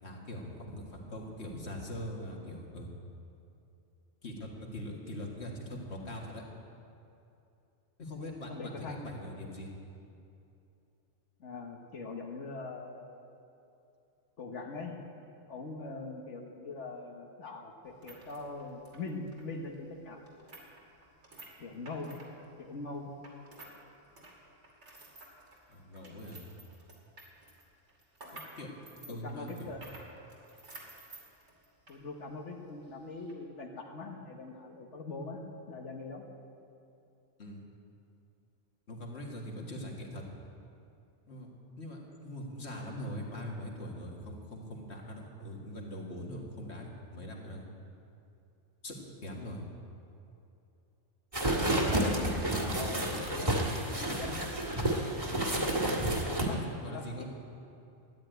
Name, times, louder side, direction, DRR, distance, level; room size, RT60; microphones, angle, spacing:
voice 1, 0.0-2.9 4.2-6.4 8.0-9.7 25.7-26.4 28.3-28.7 29.1-29.7 37.4-37.6 38.9-40.2 41.3-41.5 41.8-47.7 48.8-49.7 56.5-57.3, left 1 dB, 65° left, -1 dB, 2.3 m, -42 dB
voice 2, 8.5-9.1 11.4-13.1 14.4-15.0 15.5-20.2 21.6-22.2 22.6-23.1 29.1-29.9 31.9-36.2 51.5-53.5 54.0-54.5 56.4-56.6 56.9-57.3, left 3 dB, 85° left, 1 dB, 1.6 m, -42 dB
sound 1, 17.8-23.8 24.1-32.0 32.3-32.4 33.1-33.3, right 2 dB, 75° right, 2.8 m, -53 dB
sound 2, 51.3-56.4, right 1 dB, 30° right, 1.9 m, -30 dB
13.5 x 9.9 x 9.1 m, 2.7 s
omnidirectional pair, 1.2 m